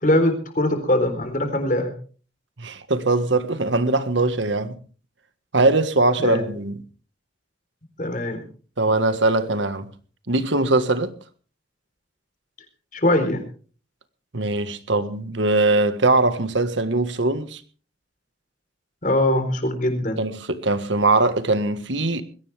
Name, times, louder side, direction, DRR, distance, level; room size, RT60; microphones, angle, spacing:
voice 1, 0.0-1.9 6.2-6.4 8.0-8.4 12.9-13.4 19.0-20.2, left 1 dB, 45° left, 4.0 m, -21 dB
voice 2, 2.6-4.8 5.5-6.8 8.8-9.9 10.3-11.1 14.3-17.6 20.2-22.2, right 2 dB, 75° right, 1.6 m, -21 dB
21.0 x 17.0 x 3.5 m
head